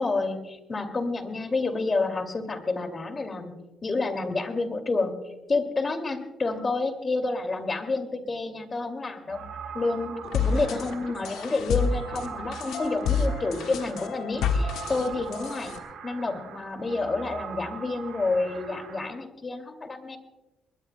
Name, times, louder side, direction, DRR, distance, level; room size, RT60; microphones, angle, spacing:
voice 1, 0.0-3.5 3.8-9.4 9.7-15.7 16.0-20.2, left 3 dB, 30° left, 7 dB, 2.3 m, -29 dB
sound 1, 9.3-19.1, right 7 dB, 80° right, 3.6 m, -41 dB
sound 2, 10.2-15.8, left 5 dB, 85° left, 1.4 m, -29 dB
22.0 x 20.5 x 2.2 m, 1.0 s
cardioid pair, 90°, 0 cm